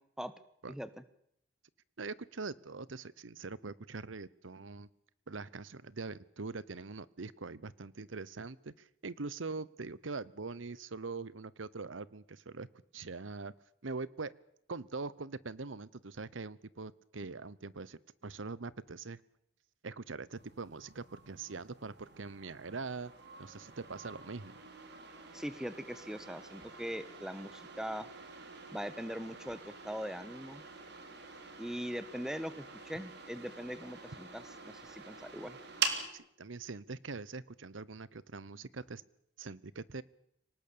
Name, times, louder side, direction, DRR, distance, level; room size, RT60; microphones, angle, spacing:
voice 1, 2.0-4.9 5.3-12.7 12.9-13.5 13.8-14.3 14.7-19.2 19.8-23.1 23.4-24.5 36.1-39.0 39.4-40.0, right 4 dB, 90° right, 20 dB, 0.9 m, -43 dB
sound 1, 20.3-36.1, right 5 dB, 60° right, 3.6 m, -45 dB
voice 2, 25.3-28.1 28.7-30.6 31.6-35.6, equal, 5° right, 14 dB, 1.2 m, -41 dB
24.5 x 19.0 x 8.6 m, 0.71 s
head